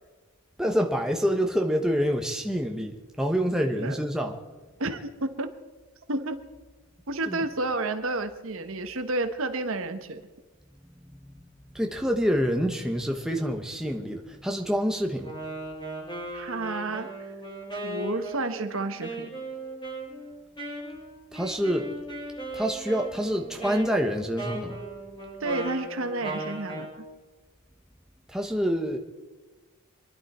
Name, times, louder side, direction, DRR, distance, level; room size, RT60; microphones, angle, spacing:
voice 1, 0.6-4.4 7.3-7.4 11.1-11.4 11.7-15.3 21.3-21.9 22.5-24.7 28.3-29.0, equal, 5° right, 1.1 m, -27 dB
voice 2, 4.8-5.5 6.1-6.4 7.1-10.2 16.3-17.3 17.8-19.3 25.4-27.0, right 2 dB, 70° right, 1.2 m, -31 dB
Wind instrument woodwind instrument, 15.2-26.9, right 1 dB, 20° left, 6.8 m, -37 dB
26.5 x 11.0 x 4.4 m
head